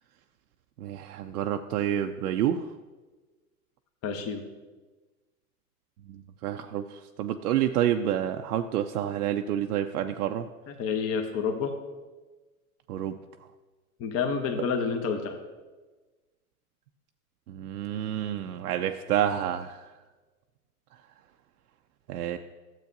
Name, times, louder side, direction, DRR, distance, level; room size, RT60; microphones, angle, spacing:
voice 1, 0.8-2.7 6.1-10.5 12.9-13.2 17.5-19.8 22.1-22.4, right 10 dB, 80° right, 6 dB, 0.5 m, -29 dB
voice 2, 4.0-4.4 10.7-11.7 14.0-15.4, left 6 dB, 35° left, 5 dB, 1.0 m, -29 dB
12.0 x 7.5 x 2.7 m, 1.3 s
hypercardioid pair, 105°, 45 cm